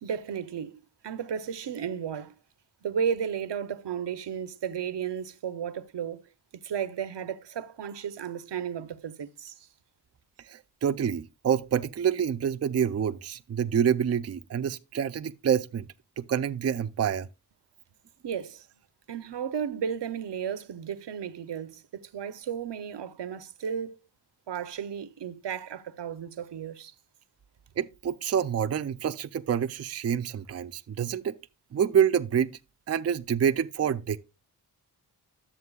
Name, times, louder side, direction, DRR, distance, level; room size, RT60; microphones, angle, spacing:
voice 1, 0.0-2.3 2.8-6.2 6.6-9.5 18.2-18.7 19.1-24.0 24.5-26.9, right 8 dB, 85° right, 0.8 m, -34 dB
voice 2, 10.5-15.9 16.2-17.3 27.8-31.3 31.7-32.5 32.9-34.2, right 8 dB, 40° right, 0.4 m, -27 dB
11.0 x 7.5 x 2.3 m
wide cardioid pair, 150°, 41 cm